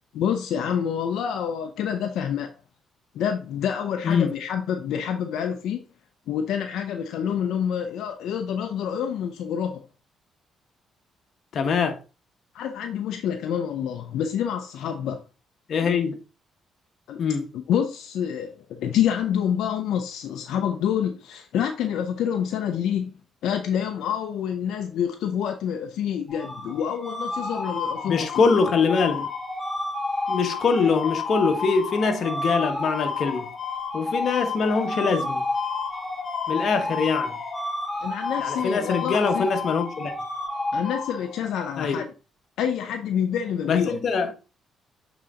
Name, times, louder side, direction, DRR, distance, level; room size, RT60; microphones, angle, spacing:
voice 1, 0.1-2.5 3.1-5.8 6.3-9.8 12.5-15.2 17.1-17.2 17.7-23.1 23.4-28.3 38.0-39.5 40.7-42.1 42.6-44.0, left 8 dB, 80° left, 0.6 m, -27 dB
voice 2, 11.5-12.0 15.7-16.2 17.2-17.5 28.0-29.3 30.3-33.5 33.9-35.4 36.5-37.4 38.4-40.1 41.8-42.0 43.7-44.3, left 5 dB, 60° left, 1.2 m, -23 dB
sound 1, 26.3-41.6, left 3 dB, 25° left, 3.5 m, -30 dB
7.5 x 4.0 x 3.7 m
cardioid pair, 90°, 0 cm